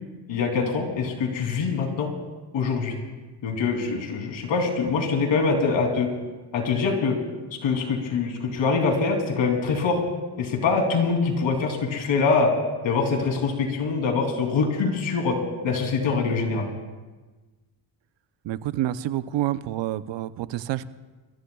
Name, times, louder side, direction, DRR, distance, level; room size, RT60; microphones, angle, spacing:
voice 1, 0.3-2.1 2.5-2.9 3.4-6.1 6.5-7.2 7.6-10.0 10.4-12.5 12.8-15.4 15.6-16.7, left 4 dB, 70° left, 2 dB, 3.1 m, -24 dB
voice 2, 18.4-20.9, right 13 dB, 65° right, 14 dB, 0.8 m, -28 dB
28.0 x 14.5 x 2.3 m, 1.2 s
supercardioid pair, 70°, 48 cm